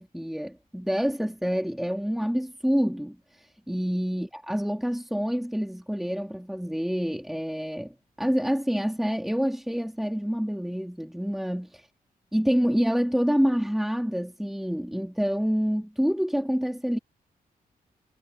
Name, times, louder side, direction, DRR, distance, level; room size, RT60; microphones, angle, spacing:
voice 1, 0.0-3.2 3.7-11.9 12.3-17.0, equal, ahead, 2.1 m, -27 dB
wide cardioid pair, 145°, 16 cm